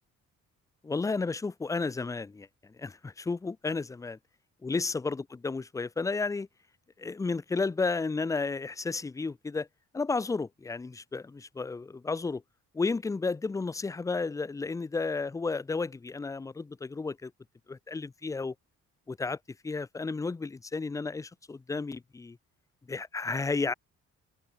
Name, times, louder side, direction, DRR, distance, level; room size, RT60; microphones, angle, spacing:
voice 1, 0.8-2.5 2.8-4.2 4.6-6.5 7.0-9.7 9.9-12.4 12.7-17.3 17.7-18.5 19.1-19.4 19.6-22.4 22.9-23.7, left 4 dB, 10° left, 0.3 m, -32 dB
open air
cardioid pair, 90°, 30 cm